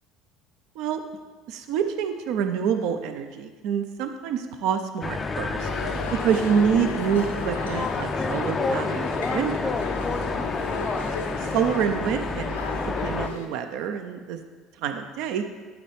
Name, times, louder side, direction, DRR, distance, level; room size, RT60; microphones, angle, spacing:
voice 1, 1.5-5.7 6.1-10.1 11.5-14.4 14.8-15.4, right 7 dB, 60° right, 8 dB, 0.6 m, -27 dB
sound 1, 5.0-13.3, left 3 dB, 25° left, 0.4 m, -29 dB
sound 2, 5.6-13.5, left 4 dB, 80° left, 0.7 m, -35 dB
12.0 x 4.5 x 3.3 m, 1.4 s
figure-of-eight pair, 65°, 0 cm